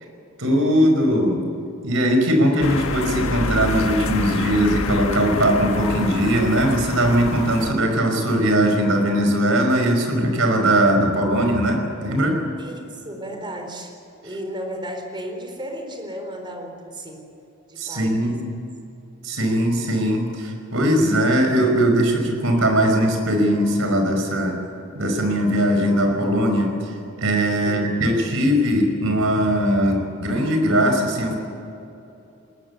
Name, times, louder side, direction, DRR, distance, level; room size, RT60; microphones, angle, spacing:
voice 1, 0.4-1.4 1.8-12.4 17.8-18.5 19.2-24.6 24.9-31.4, equal, 70° right, 3 dB, 5.3 m, -20 dB
sound 1, 2.6-7.7, left 3 dB, 80° left, 1.5 m, -27 dB
voice 2, 12.6-13.9 14.2-17.2 17.7-18.5 27.6-28.0, equal, 25° right, 3 dB, 4.2 m, -34 dB
20.0 x 20.0 x 8.3 m, 2.8 s
head